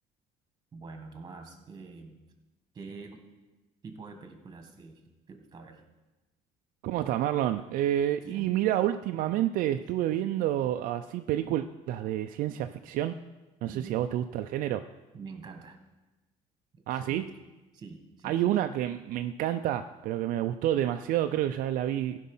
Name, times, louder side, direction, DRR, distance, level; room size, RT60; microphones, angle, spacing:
voice 1, 0.7-2.2 2.7-3.2 3.8-5.0 5.3-5.8 8.2-8.6 13.7-14.0 15.1-15.8 16.7-17.4 17.7-18.5, right 4 dB, 30° right, 5 dB, 1.7 m, -46 dB
voice 2, 6.8-13.2 13.6-14.8 16.9-17.2 18.2-22.2, right 12 dB, 70° right, 7 dB, 0.5 m, -29 dB
15.5 x 5.5 x 5.5 m, 1.1 s
cardioid pair, 125°, 15 cm